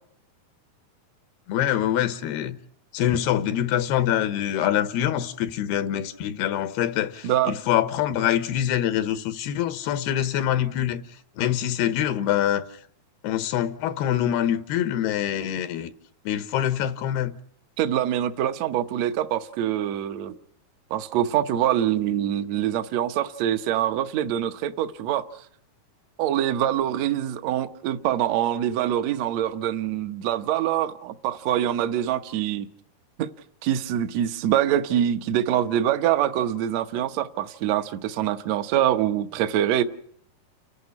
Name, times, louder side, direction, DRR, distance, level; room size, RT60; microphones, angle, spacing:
voice 1, 1.5-2.6 2.9-11.0 11.4-12.6 13.2-15.9 16.3-17.3, left 11 dB, 85° left, 3.1 m, -25 dB
voice 2, 17.8-20.3 20.9-25.3 26.2-32.7 33.2-33.3 33.6-39.8, right 11 dB, 70° right, 1.6 m, -24 dB
30.0 x 11.0 x 9.7 m
omnidirectional pair, 4.4 m